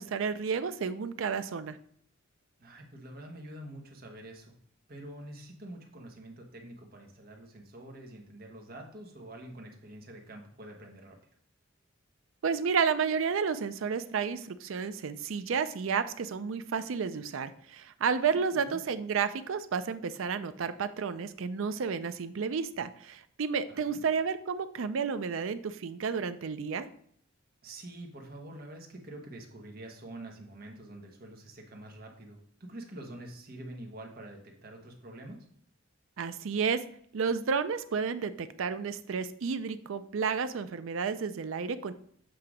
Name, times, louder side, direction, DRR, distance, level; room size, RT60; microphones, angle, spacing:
voice 1, 0.0-1.8 12.4-26.9 36.2-36.8 37.1-41.9, right 6 dB, 70° right, 12 dB, 0.4 m, -31 dB
voice 2, 2.6-4.5 4.9-11.2 18.3-18.8 23.7-24.0 27.6-35.4, right 1 dB, 50° right, 1 dB, 1.2 m, -46 dB
7.7 x 2.8 x 4.9 m, 0.64 s
head